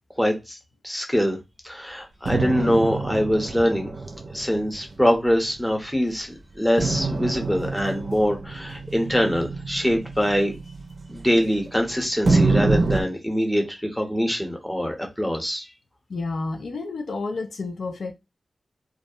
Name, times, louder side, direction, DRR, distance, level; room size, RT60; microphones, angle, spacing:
voice 1, 0.2-0.6 0.8-1.4 1.6-3.9 4.3-10.5 11.1-15.7, equal, 5° left, 0.8 m, -23 dB
sound 1, 2.2-5.9 6.8-11.8 12.2-13.0, right 3 dB, 65° right, 0.4 m, -26 dB
voice 2, 16.1-18.1, left 3 dB, 85° left, 0.4 m, -30 dB
2.3 x 2.1 x 2.6 m
wide cardioid pair, 70°, 0 cm